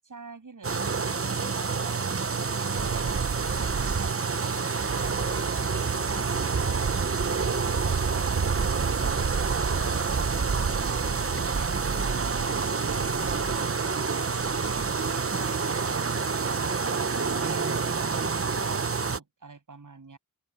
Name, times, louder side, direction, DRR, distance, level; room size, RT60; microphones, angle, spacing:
voice 1, 0.0-5.7 6.1-11.8 12.0-14.1 14.4-18.2 18.6-20.2, right 4 dB, 65° right, 7.8 m, -47 dB
sound 1, 0.6-19.2, right 5 dB, 40° right, 1.0 m, -28 dB
sound 2, 2.8-16.0, right 5 dB, 90° right, 3.5 m, -33 dB
open air
wide cardioid pair, 100°, 34 cm